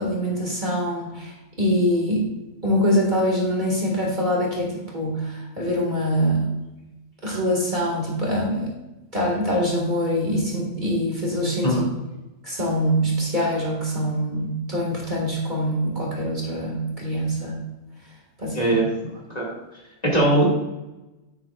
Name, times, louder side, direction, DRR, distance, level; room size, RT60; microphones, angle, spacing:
voice 1, 0.0-2.3 2.6-6.4 7.2-8.7 9.1-11.8 12.4-17.6 18.4-18.6, equal, 35° right, -3 dB, 2.2 m, -24 dB
voice 2, 18.5-18.9 19.3-19.6 20.0-20.5, right 1 dB, 30° left, -4 dB, 2.4 m, -20 dB
10.0 x 9.0 x 2.4 m, 1.0 s
omnidirectional pair, 1.4 m